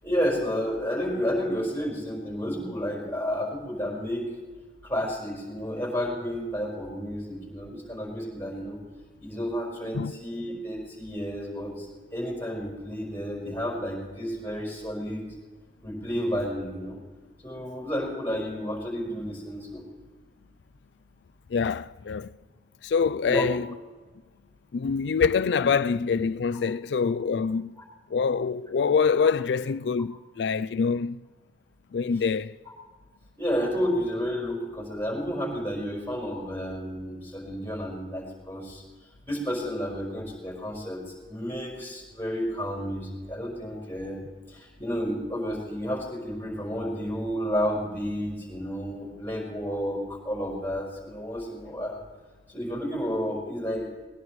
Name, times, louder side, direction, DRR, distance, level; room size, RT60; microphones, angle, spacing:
voice 1, 0.0-4.3 4.8-8.8 9.2-11.9 12.1-15.2 15.8-17.0 17.4-19.8 23.2-23.5 33.4-38.8 39.3-41.0 41.3-44.2 44.5-52.0 52.5-54.1, equal, 15° left, 4.9 m, -31 dB
voice 2, 21.5-22.4 22.8-23.7 24.7-27.7 28.1-31.2 31.9-32.6, left 5 dB, 80° left, 0.4 m, -25 dB
20.5 x 20.0 x 3.2 m
head